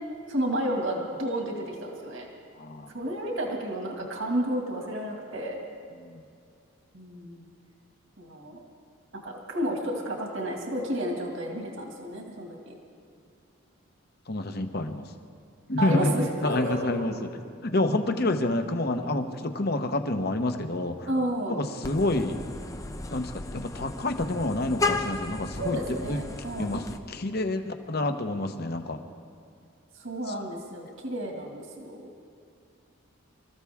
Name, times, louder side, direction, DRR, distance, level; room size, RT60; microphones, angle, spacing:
voice 1, 0.3-2.3 2.9-5.6 6.9-7.5 8.2-8.6 9.2-12.7 15.8-17.2 21.1-21.6 25.6-26.7 29.9-32.1, right 1 dB, 65° right, 0 dB, 2.1 m, -31 dB
voice 2, 2.6-2.9 6.0-6.2 14.3-15.1 15.7-17.3 17.6-21.1 21.5-22.4 23.1-26.2 26.6-29.0, left 2 dB, 50° left, 7 dB, 1.0 m, -28 dB
Vehicle horn car horn honking, 21.8-27.0, left 3 dB, 15° left, 0.5 m, -34 dB
26.0 x 14.5 x 3.6 m, 2.4 s
head